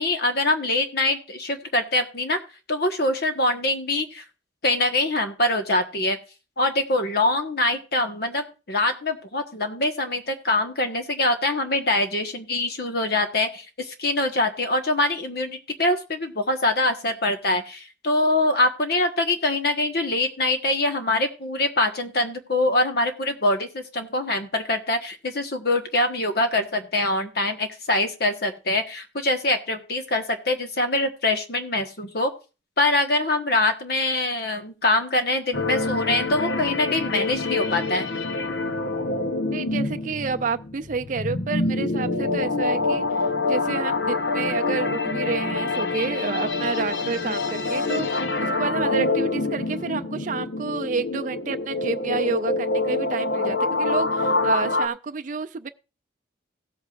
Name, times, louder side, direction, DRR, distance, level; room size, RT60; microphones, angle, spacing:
voice 1, 0.0-2.4 2.7-4.2 4.6-6.2 6.6-32.3 32.8-38.1, left 2 dB, 55° left, 1.3 m, -24 dB
sound 1, 35.5-54.9, left 3 dB, 75° left, 0.9 m, -26 dB
voice 2, 39.5-43.0 43.5-48.1 48.4-55.7, right 5 dB, 45° right, 0.4 m, -29 dB
17.0 x 8.1 x 2.5 m
head